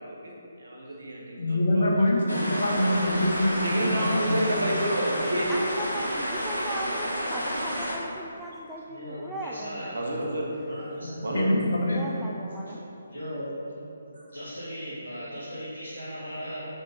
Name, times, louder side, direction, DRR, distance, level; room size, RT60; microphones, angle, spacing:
voice 1, 0.0-2.2 3.6-5.5 9.9-10.5 11.2-11.5 14.1-14.3, right 1 dB, 65° right, -2 dB, 1.2 m, -30 dB
voice 2, 1.4-4.5 11.0-12.2, left 1 dB, 55° left, -1 dB, 1.1 m, -25 dB
sound 1, 2.3-8.0, equal, 80° left, 1.3 m, -30 dB
voice 3, 5.5-10.0 11.9-12.8, right 1 dB, ahead, -5 dB, 0.3 m, -38 dB
voice 4, 8.9-9.9 10.6-11.6 12.6-12.7 13.1-13.5 14.3-16.6, equal, 85° right, -10 dB, 1.5 m, -38 dB
6.1 x 4.0 x 5.0 m, 2.7 s
figure-of-eight pair, 140°, 0 cm